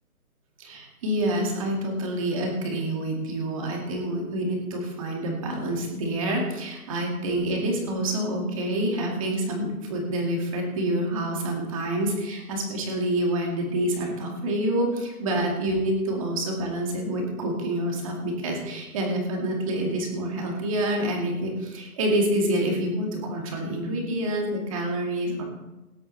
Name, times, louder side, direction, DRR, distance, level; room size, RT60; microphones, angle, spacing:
voice 1, 0.6-25.4, right 1 dB, 20° right, 0 dB, 2.2 m, -27 dB
19.0 x 10.0 x 3.3 m, 1.0 s
hypercardioid pair, 170°, 45 cm